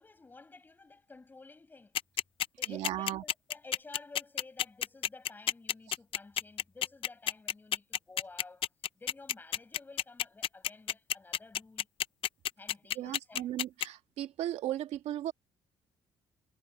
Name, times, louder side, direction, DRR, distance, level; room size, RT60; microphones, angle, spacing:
voice 1, 0.0-2.0 2.6-8.7 9.0-11.9 12.6-13.5, left 3 dB, 15° left, 7.2 m, -52 dB
sound 1, 1.9-13.9, left 11 dB, 55° left, 0.5 m, -30 dB
voice 2, 2.7-3.2 13.0-15.3, right 13 dB, 80° right, 1.8 m, -36 dB
cardioid pair, 145°, 11 cm